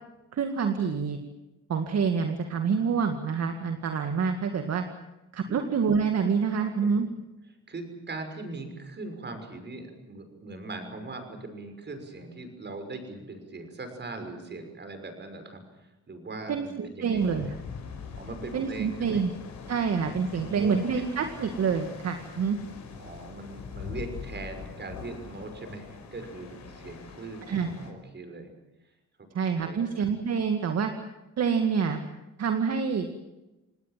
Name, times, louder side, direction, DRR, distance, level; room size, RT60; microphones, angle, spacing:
voice 1, 0.3-1.2 1.7-4.8 5.3-7.1 16.5-17.5 18.5-19.3 19.7-22.6 27.5-27.7 29.3-30.9 31.4-32.0 32.4-33.1, right 6 dB, 55° right, 6 dB, 2.1 m, -27 dB
voice 2, 7.7-17.5 18.2-19.2 20.3-20.8 22.9-28.5 29.6-29.9, right 3 dB, 35° right, 7 dB, 6.0 m, -40 dB
sound 1, 17.2-27.9, left 5 dB, 65° left, 5.9 m, -43 dB
28.5 x 18.5 x 7.6 m, 1.0 s
cardioid pair, 90°, 30 cm